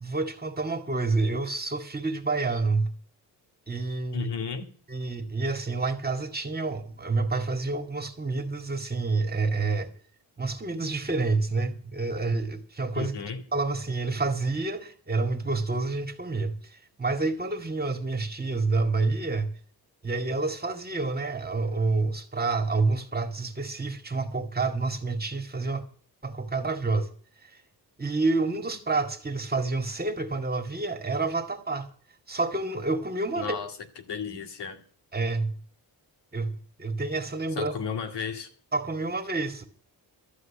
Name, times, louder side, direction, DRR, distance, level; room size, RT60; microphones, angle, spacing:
voice 1, 0.0-2.9 3.7-4.3 4.9-9.9 10.4-13.1 13.5-19.6 20.0-25.8 26.2-27.1 27.5-27.6 28.0-31.9 32.3-33.6 35.1-35.5 36.3-37.7 38.7-39.6, right 3 dB, 25° right, 2.1 m, -28 dB
voice 2, 4.1-4.7 12.9-13.4 33.4-33.7 34.1-34.8 37.6-38.5, left 6 dB, 80° left, 2.1 m, -33 dB
13.0 x 8.2 x 8.5 m
cardioid pair, 100°, 41 cm